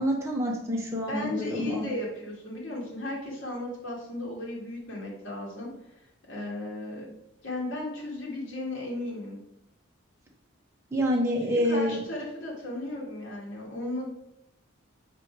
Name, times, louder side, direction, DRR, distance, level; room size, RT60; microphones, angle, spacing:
voice 1, 0.0-1.9 10.9-12.0, equal, 15° right, -2 dB, 1.0 m, -27 dB
voice 2, 1.1-6.0 6.3-7.1 7.4-9.4 11.4-14.1, left 1 dB, 65° left, -3 dB, 1.9 m, -35 dB
5.6 x 4.0 x 4.7 m, 0.83 s
head